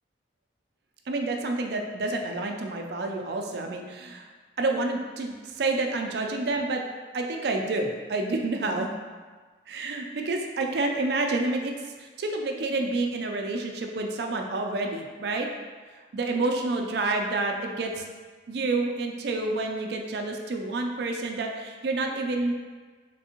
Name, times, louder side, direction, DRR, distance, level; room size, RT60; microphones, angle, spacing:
voice 1, 1.1-4.3 4.6-6.8 7.1-9.0 9.7-11.7 12.2-15.5 16.1-18.0 18.5-22.5, right 2 dB, 60° right, 3 dB, 0.4 m, -28 dB
3.6 x 3.3 x 2.8 m, 1.5 s
head